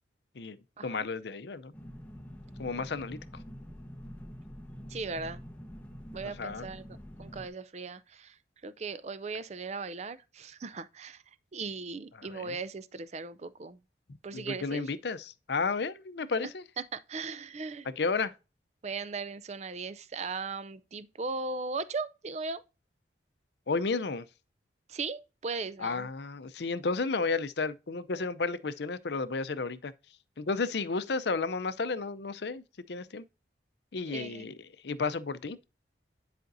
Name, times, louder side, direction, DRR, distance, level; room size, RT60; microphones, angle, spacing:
voice 1, 0.8-1.7 2.6-3.4 6.2-6.7 12.2-12.6 14.3-16.6 17.8-18.3 23.7-24.3 25.8-29.9 30.4-33.2 33.9-35.6, left 4 dB, 65° left, 0.6 m, -32 dB
sound 1, 1.7-7.5, equal, 10° left, 1.1 m, -46 dB
voice 2, 4.9-5.4 6.1-6.9 7.2-8.4 8.6-11.2 11.5-13.8 14.2-14.8 16.9-17.9 18.8-22.6 24.9-26.1 34.1-34.5, right 4 dB, 40° right, 0.5 m, -38 dB
10.5 x 5.1 x 2.6 m
head